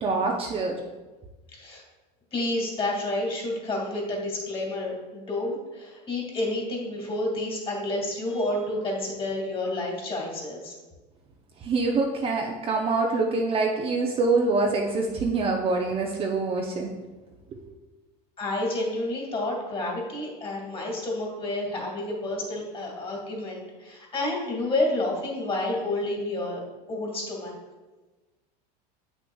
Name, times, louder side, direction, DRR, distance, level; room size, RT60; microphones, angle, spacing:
voice 1, 0.0-0.8 11.6-16.9 17.5-17.6, right 3 dB, 30° right, 0 dB, 0.6 m, -25 dB
voice 2, 1.5-1.8 2.3-10.7 18.4-26.6 26.9-27.5, left 2 dB, 25° left, -2 dB, 2.1 m, -30 dB
7.7 x 6.2 x 2.3 m, 1.2 s
supercardioid pair, 120°, 21 cm